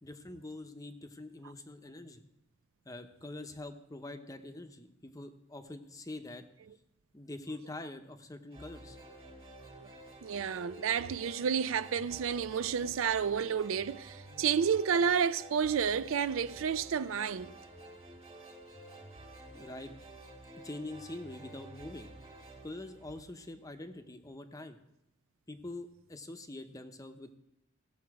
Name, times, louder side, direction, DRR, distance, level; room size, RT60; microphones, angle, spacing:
voice 1, 0.0-2.2 2.8-6.4 7.1-9.0 19.5-19.9 20.6-22.1 22.6-24.8 25.5-27.4, left 2 dB, 15° left, 0.7 m, -45 dB
sound 1, 8.5-23.8, right 2 dB, 30° right, 2.0 m, -51 dB
voice 2, 10.2-17.5, right 7 dB, 80° right, 0.4 m, -30 dB
17.0 x 7.1 x 4.8 m
head